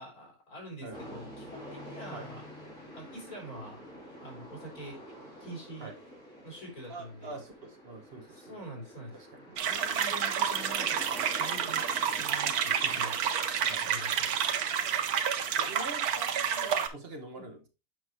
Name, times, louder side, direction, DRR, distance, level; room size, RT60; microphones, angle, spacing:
voice 1, 0.0-2.4 2.9-3.8 4.2-5.0 5.4-5.9 6.4-7.4 8.3-11.0 11.4-11.8 12.2-13.2 13.8-14.4 17.4-17.5, right 1 dB, 75° left, -2 dB, 4.1 m, -45 dB
sound 1, 0.9-15.6, equal, 55° left, 5.5 m, -48 dB
voice 2, 6.9-8.6 9.1-9.4 12.9-13.1 13.6-13.8 15.6-17.6, right 2 dB, 45° right, 5 dB, 1.4 m, -44 dB
sound 2, 9.6-16.9, right 8 dB, 80° right, 1.3 m, -29 dB
7.8 x 6.0 x 3.1 m, 0.29 s
omnidirectional pair, 1.6 m